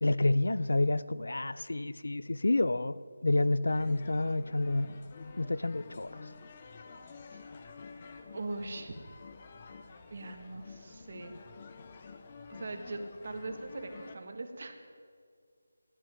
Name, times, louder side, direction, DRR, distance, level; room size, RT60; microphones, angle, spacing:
voice 1, 0.0-5.0 5.4-6.2, left 2 dB, 80° left, 16 dB, 0.6 m, -29 dB
sound 1, 3.7-14.2, left 4 dB, 25° left, 0.7 m, -50 dB
voice 2, 8.3-8.9 10.1-11.3 12.5-14.7, right 2 dB, 40° right, 5 dB, 1.5 m, -41 dB
14.5 x 9.9 x 9.2 m, 2.1 s
figure-of-eight pair, 175°, 0 cm